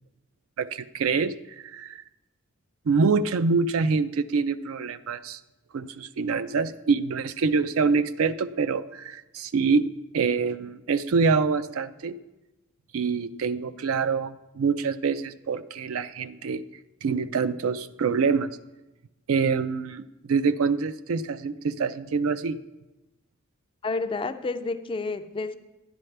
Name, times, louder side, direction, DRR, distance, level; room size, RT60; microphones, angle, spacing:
voice 1, 0.6-2.0 2.9-5.4 5.7-9.9 10.1-12.2 12.9-16.6 17.0-18.5 19.3-22.6, right 5 dB, 70° right, 13 dB, 0.4 m, -25 dB
voice 2, 23.8-25.6, left 3 dB, 25° left, 10 dB, 0.3 m, -30 dB
11.0 x 10.5 x 3.3 m, 1.0 s
head